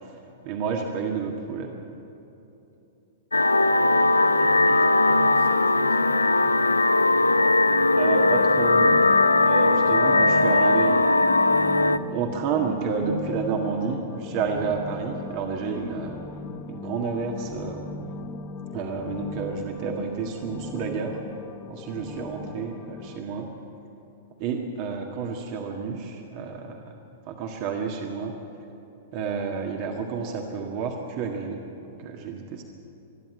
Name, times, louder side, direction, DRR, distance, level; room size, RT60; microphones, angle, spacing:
voice 1, 0.4-1.8 7.9-9.1 9.4-11.2 12.1-16.2 16.7-17.8 18.7-21.2 21.6-23.5 24.4-26.8 27.2-28.4 29.1-31.6 32.0-32.6, right 5 dB, 40° right, 2 dB, 1.7 m, -30 dB
sound 1, 3.3-12.0, left 2 dB, 85° left, 0.5 m, -19 dB
voice 2, 4.2-6.6, right 2 dB, 80° right, 0 dB, 3.6 m, -41 dB
sound 2, 7.7-23.2, left 5 dB, 30° left, 0.8 m, -38 dB
26.0 x 10.5 x 9.6 m, 2.8 s
figure-of-eight pair, 105°, 0 cm